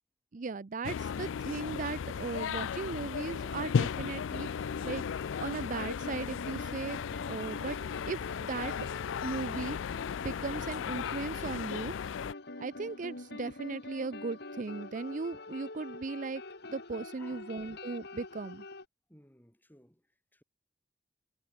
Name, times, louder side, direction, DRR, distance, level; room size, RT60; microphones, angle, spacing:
voice 1, 0.3-5.1 5.4-7.0 7.3-7.8 8.1-8.7 9.2-9.8 10.2-11.9 12.6-16.4 16.7-18.6, right 4 dB, 45° right, 0.5 m, -37 dB
sound 1, 0.8-12.3, left 7 dB, 85° left, 0.4 m, -35 dB
sound 2, 3.3-18.8, left 2 dB, 60° left, 2.4 m, -46 dB
voice 2, 17.2-17.5 19.1-20.4, left 1 dB, 10° left, 6.0 m, -60 dB
head